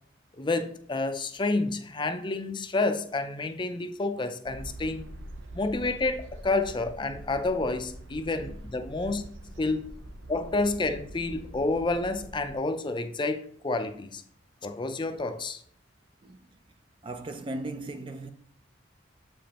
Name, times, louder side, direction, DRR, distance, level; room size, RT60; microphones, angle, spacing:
voice 1, 0.3-5.0 5.5-9.2 9.6-9.8 10.3-14.2 14.6-15.6, left 2 dB, 25° left, 0.5 m, -29 dB
sound 1, 4.4-12.6, right 1 dB, 90° right, 0.8 m, -44 dB
voice 2, 16.2-16.6 17.0-18.3, right 2 dB, 25° right, 0.4 m, -37 dB
7.6 x 5.1 x 2.9 m
head